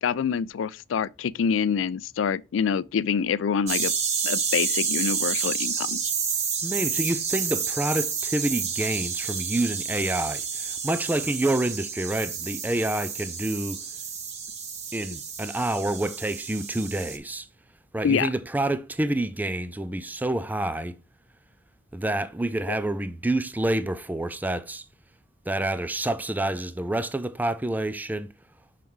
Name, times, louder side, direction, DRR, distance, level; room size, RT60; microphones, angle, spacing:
voice 1, 0.0-3.9 4.2-6.0 18.0-18.3, left 7 dB, 85° left, 0.4 m, -26 dB
sound 1, 3.7-17.2, right 6 dB, 35° right, 0.9 m, -30 dB
voice 2, 6.6-13.8 14.9-17.5 17.9-21.0 21.9-24.8 25.5-28.3, right 1 dB, 10° right, 0.4 m, -28 dB
5.8 x 5.3 x 3.1 m
head